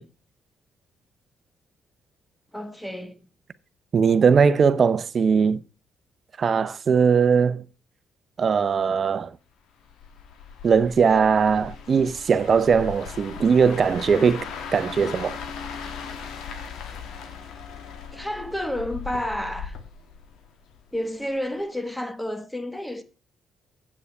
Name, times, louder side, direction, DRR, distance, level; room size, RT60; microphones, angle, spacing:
voice 1, 2.5-3.3 18.1-19.8 20.9-23.0, left 1 dB, 5° left, 1.3 m, -30 dB
voice 2, 3.9-5.6 6.4-7.6 8.4-9.3 10.6-15.4, right 6 dB, 45° right, 0.7 m, -20 dB
sound 1, 9.8-21.0 21.3-21.6, left 6 dB, 85° left, 1.6 m, -38 dB
8.4 x 7.5 x 5.4 m
cardioid pair, 90°, 0 cm